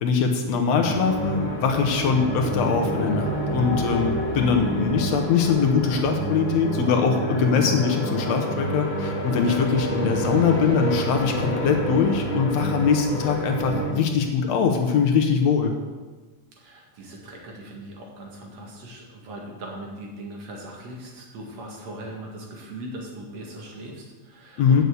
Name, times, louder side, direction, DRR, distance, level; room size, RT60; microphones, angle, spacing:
voice 1, 0.0-15.7 24.6-24.8, left 6 dB, 70° left, 4 dB, 2.0 m, -22 dB
sound 1, 0.7-13.9, right 1 dB, 45° left, 2.2 m, -28 dB
voice 2, 9.4-9.9 16.5-24.8, right 1 dB, 65° right, -1 dB, 2.8 m, -39 dB
8.1 x 6.8 x 7.8 m, 1.3 s
omnidirectional pair, 3.4 m